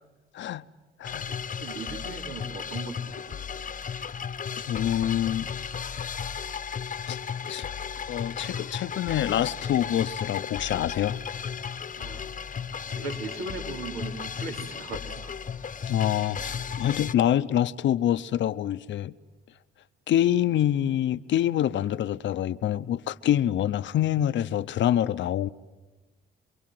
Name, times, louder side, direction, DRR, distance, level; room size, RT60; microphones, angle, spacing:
voice 1, 0.3-0.7 1.0-1.3 4.6-5.5 7.1-7.2 7.5-7.7 8.1-11.2 15.9-19.2 20.1-25.5, left 11 dB, 70° left, 0.8 m, -26 dB
sound 1, 1.0-17.1, left 7 dB, 40° left, 1.0 m, -35 dB
voice 2, 1.5-3.7 12.0-12.3 12.9-15.3, right 3 dB, 80° right, 3.4 m, -38 dB
28.5 x 23.0 x 7.8 m
cardioid pair, 90°, 20 cm